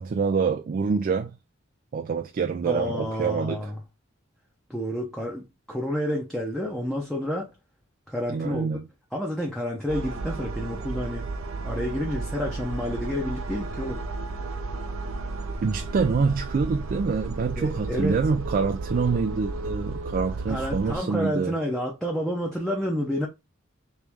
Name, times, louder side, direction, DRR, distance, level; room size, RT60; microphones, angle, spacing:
voice 1, 0.0-1.4 1.9-3.7 8.3-8.9 15.6-21.6, right 5 dB, 40° right, 0.3 m, -26 dB
voice 2, 2.7-3.8 4.7-7.5 8.1-8.8 9.1-11.3 11.6-14.1 17.6-18.2 20.5-23.3, equal, ahead, 0.7 m, -29 dB
sound 1, 9.9-21.0, right 3 dB, 80° right, 0.6 m, -33 dB
3.2 x 3.1 x 3.4 m
head